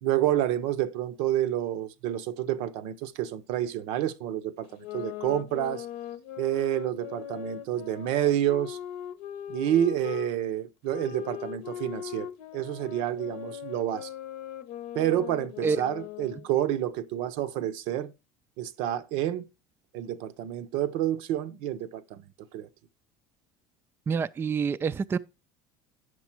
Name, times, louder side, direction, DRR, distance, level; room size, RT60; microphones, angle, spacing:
voice 1, 0.0-5.9 6.4-8.8 9.5-14.1 14.9-18.1 18.6-19.5 19.9-22.7, right 12 dB, 70° right, 0.7 m, -29 dB
sound 1, 4.7-10.3 10.9-16.5, left 11 dB, 75° left, 0.8 m, -39 dB
voice 2, 24.1-25.2, right 6 dB, 20° right, 0.3 m, -27 dB
8.1 x 6.1 x 4.4 m
supercardioid pair, 100°, 10 cm